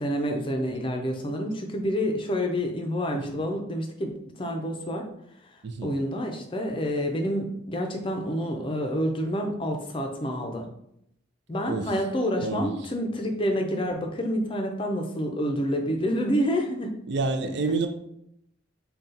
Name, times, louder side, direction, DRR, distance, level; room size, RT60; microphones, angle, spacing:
voice 1, 0.0-5.0 5.8-10.7 11.5-16.9 17.4-17.5, equal, 25° left, 0.5 m, -28 dB
voice 2, 11.7-12.0 12.4-12.9 17.0-17.9, right 3 dB, 55° right, 0.4 m, -28 dB
4.1 x 2.3 x 3.8 m
head